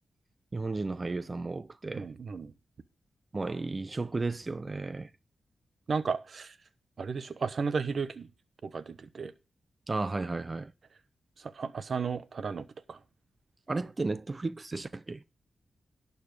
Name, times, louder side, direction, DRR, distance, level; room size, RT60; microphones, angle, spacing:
voice 1, 0.5-2.1 3.3-5.1 9.9-10.7 13.7-15.2, right 3 dB, 35° right, 0.6 m, -33 dB
voice 2, 1.9-2.5 5.9-6.5 7.0-8.3 8.6-9.3 11.5-13.0, right 5 dB, 65° right, 1.0 m, -34 dB
11.5 x 5.6 x 6.3 m
cardioid pair, 50°, 0 cm